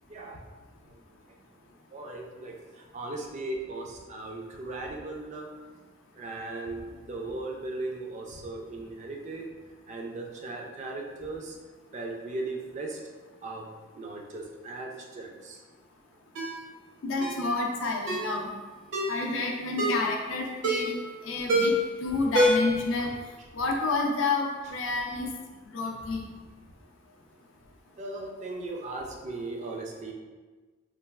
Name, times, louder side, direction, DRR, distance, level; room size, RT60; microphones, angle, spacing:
voice 1, 0.1-0.4 0.9-1.0 1.9-5.5 6.1-9.5 9.9-11.6 11.9-13.0 13.4-13.7 14.0-15.6 23.0-23.1 28.0-30.1, right 2 dB, 35° right, 0 dB, 0.3 m, -37 dB
Ringtone, 16.3-16.6 17.2-17.4 18.1-18.3 18.9-19.2 19.8-20.1 20.6-21.0 21.5-21.9 22.3-22.8 23.1-23.2, equal, 65° right, 0.6 m, -25 dB
voice 2, 17.0-18.5 19.1-23.1 23.5-25.3 25.6-26.3, left 3 dB, 70° left, 1 dB, 0.4 m, -29 dB
3.1 x 2.2 x 2.3 m, 1.3 s
head